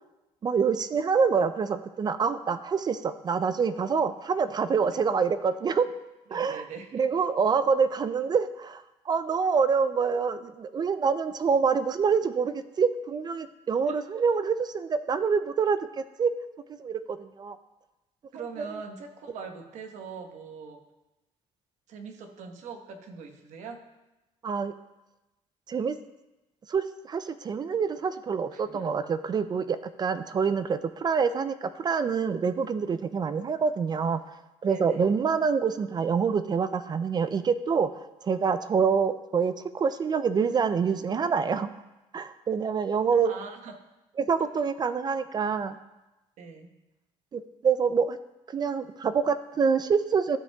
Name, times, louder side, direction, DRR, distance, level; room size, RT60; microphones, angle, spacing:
voice 1, 0.4-5.9 6.3-6.6 6.9-16.3 16.7-17.6 24.4-24.7 25.7-26.0 26.7-34.2 34.6-37.9 38.2-41.7 42.1-43.3 44.2-45.8 47.3-48.2 48.5-50.4, right 6 dB, 35° right, 12 dB, 0.4 m, -26 dB
voice 2, 6.3-6.9 13.8-14.0 18.3-20.8 21.9-23.8 28.5-28.8 34.7-35.1 43.2-43.7 46.4-46.7, right 5 dB, 70° right, 5 dB, 1.1 m, -42 dB
14.5 x 5.5 x 2.3 m, 1.0 s
cardioid pair, 95°, 12 cm